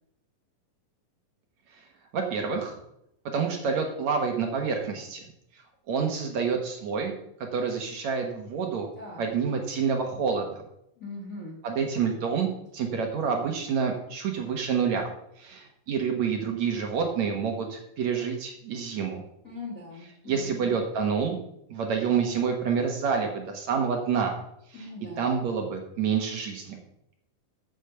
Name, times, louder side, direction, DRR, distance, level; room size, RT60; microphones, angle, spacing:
voice 1, 2.1-2.8 3.3-5.2 5.9-7.1 7.5-8.9 9.2-10.6 11.6-15.1 15.4-19.2 20.3-21.4 21.7-24.3 24.7-24.9 25.2-26.8, right 6 dB, 60° right, 2 dB, 2.3 m, -28 dB
voice 2, 8.9-9.3 11.0-11.6 19.4-20.8 24.7-25.3, left 2 dB, 35° left, -1 dB, 1.4 m, -41 dB
8.5 x 8.2 x 6.9 m, 0.78 s
omnidirectional pair, 4.1 m